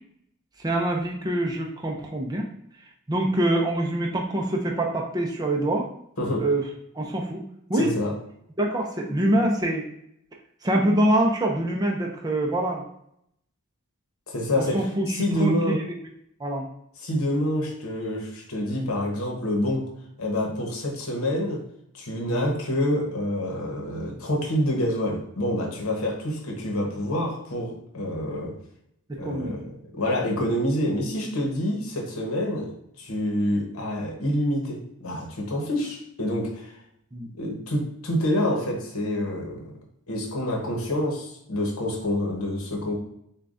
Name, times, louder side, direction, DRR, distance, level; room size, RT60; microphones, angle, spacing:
voice 1, 0.6-2.5 3.1-5.9 6.4-6.7 6.9-7.4 7.7-7.9 8.6-9.9 10.6-12.8 14.6-15.5 16.4-16.7 22.3-22.5 29.1-29.6 37.1-37.3, right 1 dB, 15° right, 0 dB, 0.5 m, -25 dB
voice 2, 6.2-6.5 7.7-8.1 14.3-15.8 17.0-19.9 20.2-21.6 21.9-28.6 29.2-36.7 37.4-39.7 40.1-43.0, left 1 dB, 70° left, 0 dB, 1.1 m, -27 dB
6.6 x 2.3 x 2.5 m, 0.73 s
head